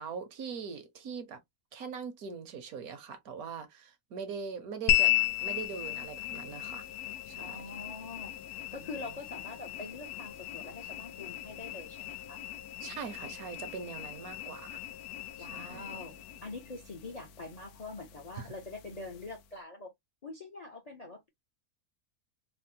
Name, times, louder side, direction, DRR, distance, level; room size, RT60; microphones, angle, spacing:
voice 1, 0.0-1.4 1.7-5.1 5.4-6.8 7.3-7.6 8.7-8.8 12.8-14.8 15.4-15.9 18.4-18.5, right 6 dB, 75° right, 1.3 m, -41 dB
sound 1, 4.9-19.5, left 14 dB, 80° left, 1.1 m, -36 dB
voice 2, 7.4-8.3 8.7-12.4 15.4-19.9 20.2-21.3, left 3 dB, 40° left, 0.5 m, -44 dB
4.2 x 2.0 x 2.7 m
omnidirectional pair, 1.6 m